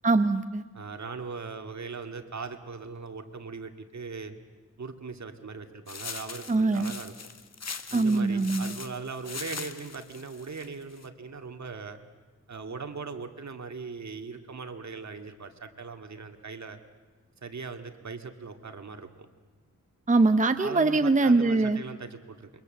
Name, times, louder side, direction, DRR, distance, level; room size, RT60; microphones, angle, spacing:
voice 1, 0.0-0.6 6.5-6.9 7.9-8.8 20.1-21.8, right 3 dB, 25° right, 9 dB, 0.7 m, -23 dB
voice 2, 0.7-4.3 4.8-7.1 7.9-12.0 12.5-16.8 17.4-19.1 20.6-22.5, right 4 dB, 60° right, 6 dB, 2.1 m, -39 dB
sound 1, 5.9-11.1, left 5 dB, 55° left, 1.5 m, -41 dB
28.0 x 23.5 x 7.8 m, 1.4 s
wide cardioid pair, 120°, 31 cm